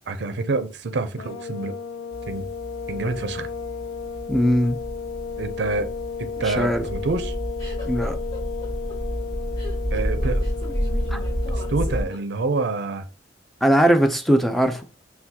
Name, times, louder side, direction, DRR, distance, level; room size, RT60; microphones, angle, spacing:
voice 1, 0.1-1.7 2.3-2.5 2.9-3.5 5.4-5.9 6.2-7.3 9.9-10.4 11.7-13.1, right 3 dB, 65° right, 0.5 m, -27 dB
sound 1, 1.2-12.2, left 5 dB, 85° left, 0.4 m, -34 dB
sound 2, 2.1-12.0, equal, 50° left, 1.5 m, -30 dB
voice 2, 4.3-4.8 6.5-6.8 7.9-8.2 11.1-11.2 13.6-14.8, equal, ahead, 0.5 m, -19 dB
sound 3, 6.4-12.6, left 3 dB, 20° left, 1.8 m, -41 dB
5.9 x 2.3 x 2.8 m
head